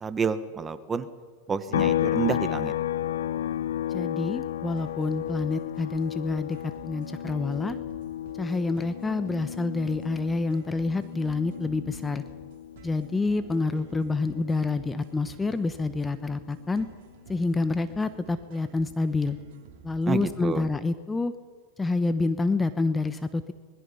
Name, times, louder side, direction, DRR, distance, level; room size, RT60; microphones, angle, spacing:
voice 1, 0.0-1.1 1.5-2.7 20.1-20.7, right 5 dB, 20° right, 11 dB, 1.5 m, -29 dB
sound 1, 1.7-15.3 15.6-17.8, left 11 dB, 80° left, 0.7 m, -33 dB
voice 2, 3.9-7.8 8.4-12.2 12.8-16.9 17.3-19.4 19.8-21.3 21.8-23.4, left 3 dB, 15° left, 10 dB, 1.1 m, -28 dB
sound 2, 4.8-20.7, right 7 dB, 60° right, 3.3 m, -52 dB
25.5 x 21.0 x 5.7 m, 1.5 s
hypercardioid pair, 110°, 0 cm